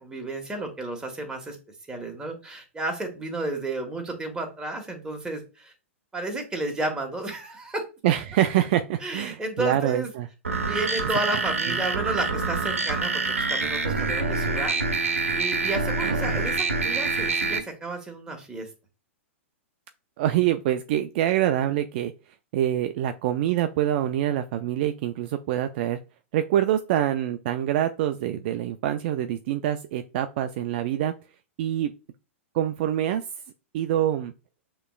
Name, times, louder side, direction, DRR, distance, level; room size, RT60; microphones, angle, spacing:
voice 1, 0.0-1.6 1.9-5.7 6.1-7.8 9.0-10.1 10.6-14.8 15.3-18.7, right 2 dB, 10° right, 2 dB, 1.4 m, -32 dB
voice 2, 8.0-10.3 11.7-11.8 16.0-16.4 20.2-22.1 22.5-26.0 26.3-31.1 31.6-31.9 32.5-33.3 33.7-34.3, right 12 dB, 50° right, 8 dB, 0.4 m, -25 dB
sound 1, 10.4-17.6, right 3 dB, 90° right, 0.8 m, -26 dB
6.6 x 3.1 x 2.4 m, 0.31 s
hypercardioid pair, 110°, 7 cm